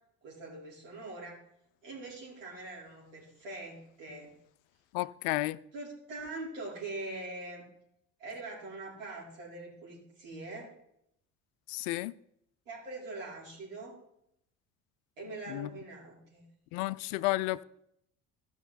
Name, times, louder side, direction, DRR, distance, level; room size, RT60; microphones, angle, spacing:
voice 1, 0.2-1.4 1.8-4.3 5.7-7.6 8.2-10.7 12.7-14.0 15.2-16.4, right 2 dB, 85° right, 4.4 m, -43 dB
voice 2, 4.9-5.6 11.7-12.1 15.5-15.7 16.7-17.6, left 19 dB, 70° left, 0.5 m, -32 dB
15.5 x 6.2 x 4.2 m
hypercardioid pair, 55°, 37 cm